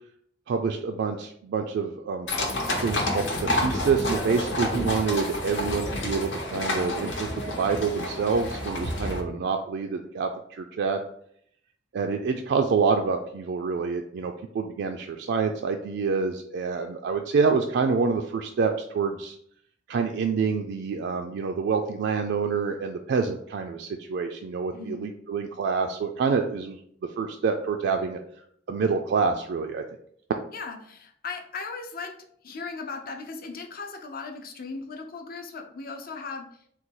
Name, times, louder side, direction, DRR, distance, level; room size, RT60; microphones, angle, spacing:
voice 1, 0.5-2.3 2.8-11.1 11.9-19.4 19.9-26.8 27.2-28.2 28.7-29.8, right 5 dB, 65° right, 4 dB, 0.3 m, -27 dB
sound 1, 2.3-9.2, left 1 dB, 85° left, 1.0 m, -29 dB
voice 2, 24.7-25.0 30.5-32.1 32.4-36.4, left 4 dB, 55° left, 4 dB, 0.6 m, -37 dB
3.9 x 2.2 x 4.5 m, 0.67 s
head